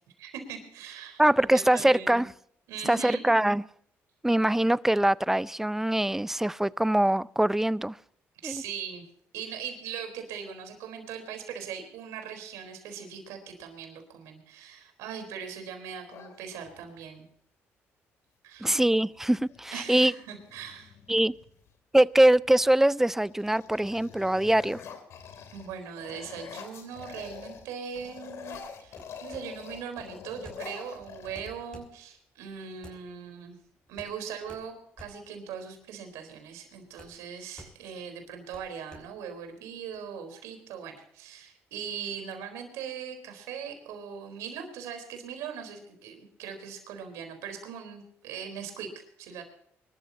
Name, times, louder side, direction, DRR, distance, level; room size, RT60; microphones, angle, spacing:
voice 1, 0.2-1.2 1.5-2.2 2.7-3.3 8.4-9.1 9.3-17.3 18.4-18.8 19.7-21.0 25.5-33.6 33.9-49.4, right 7 dB, 90° right, 4.0 m, -40 dB
voice 2, 1.2-2.3 2.9-3.6 4.2-8.0 8.4-8.6 18.6-20.1 21.1-21.3 21.9-24.8, right 1 dB, 5° right, 0.5 m, -23 dB
sound 1, 16.1-17.0 18.7-18.8 19.2-19.7 20.2-21.7 22.4-22.8 23.1-27.7 27.9-31.9, left 6 dB, 70° left, 3.0 m, -45 dB
sound 2, 27.8-40.0, left 1 dB, 15° left, 5.8 m, -53 dB
24.5 x 13.0 x 2.9 m
cardioid pair, 80°, 5 cm